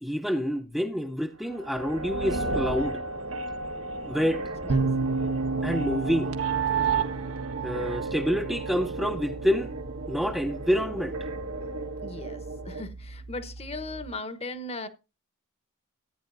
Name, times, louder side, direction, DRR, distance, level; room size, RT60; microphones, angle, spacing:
voice 1, 0.0-3.0 4.1-4.4 5.6-6.3 7.6-9.7 10.1-11.2, equal, ahead, 0.7 m, -27 dB
sound 1, 1.5-12.8, right 4 dB, 75° right, 1.5 m, -33 dB
sound 2, 4.7-14.1, right 3 dB, 60° right, 1.0 m, -34 dB
voice 2, 12.0-14.9, left 2 dB, 30° left, 1.0 m, -38 dB
14.5 x 9.1 x 2.6 m
head